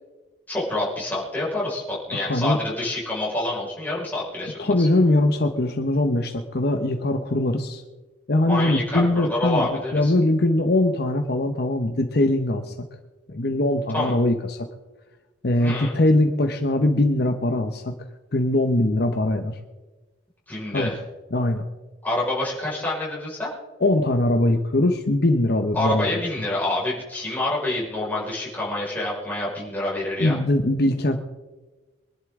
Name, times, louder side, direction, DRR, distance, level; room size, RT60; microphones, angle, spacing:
voice 1, 0.5-4.9 8.5-10.1 13.9-14.1 15.6-16.0 20.5-21.0 22.0-23.5 25.7-30.4, left 2 dB, 10° left, -6 dB, 5.0 m, -27 dB
voice 2, 2.1-2.6 4.6-7.8 8.3-12.7 13.3-14.7 15.4-17.9 18.3-19.5 20.7-20.9 21.3-21.6 23.8-26.2 30.2-31.2, left 1 dB, 55° left, 6 dB, 0.9 m, -21 dB
24.0 x 11.0 x 3.7 m, 1.2 s
head